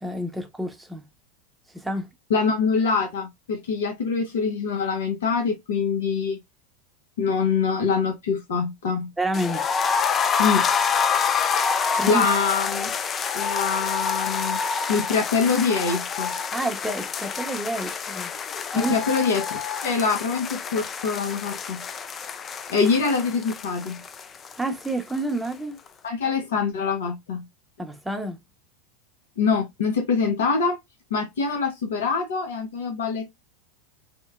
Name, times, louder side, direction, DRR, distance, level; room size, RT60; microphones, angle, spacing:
voice 1, 0.0-1.0 1.7-2.1 9.2-9.7 11.9-12.3 16.5-18.3 18.6-18.9 24.6-25.8 27.8-28.4, right 1 dB, 5° right, 0.7 m, -29 dB
voice 2, 2.3-6.4 7.2-9.1 10.4-10.7 12.1-12.9 13.3-14.6 14.9-16.3 18.7-19.5 19.8-21.8 22.7-24.0 26.0-27.4 29.4-30.8 31.1-33.3, left 5 dB, 70° left, 0.7 m, -24 dB
sound 1, 9.3-25.2 25.4-25.5 25.9-26.0, left 6 dB, 30° left, 0.3 m, -27 dB
3.0 x 2.1 x 2.3 m
hypercardioid pair, 85°, 0 cm